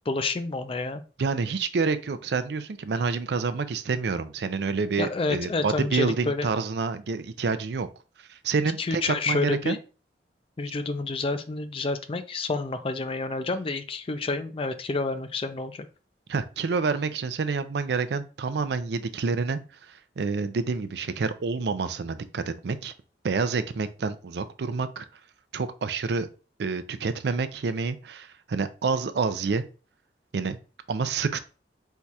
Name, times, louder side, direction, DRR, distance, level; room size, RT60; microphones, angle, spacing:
voice 1, 0.1-1.0 5.0-6.5 8.8-9.8 10.6-15.9, left 3 dB, 30° left, 9 dB, 0.4 m, -29 dB
voice 2, 1.2-7.9 8.3-9.8 16.3-19.6 19.9-22.9 23.2-25.1 25.5-26.3 26.6-29.6 30.3-30.6 30.9-31.4, right 4 dB, 65° right, 11 dB, 0.4 m, -28 dB
4.5 x 2.3 x 4.0 m, 0.35 s
head